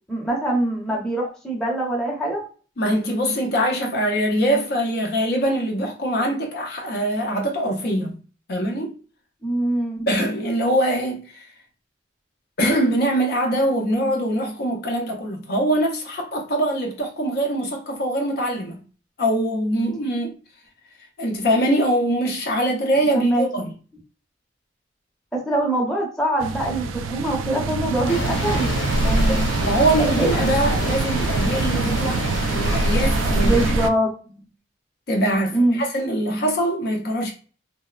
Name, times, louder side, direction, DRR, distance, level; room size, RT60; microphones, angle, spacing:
voice 1, 0.1-2.4 9.4-10.1 23.1-23.4 25.3-28.7 29.0-29.5 30.0-30.5 33.4-34.5 35.5-35.8, right 1 dB, 5° left, 0.6 m, -23 dB
voice 2, 2.8-8.2 8.5-8.9 10.1-11.5 12.6-18.8 19.2-20.3 21.2-23.7 29.3-33.9 35.1-37.3, right 1 dB, 55° left, 0.5 m, -23 dB
sound 1, 26.4-33.9, right 3 dB, 85° right, 0.3 m, -24 dB
sound 2, 28.1-33.7, left 1 dB, 85° left, 0.9 m, -28 dB
2.9 x 2.0 x 2.3 m
head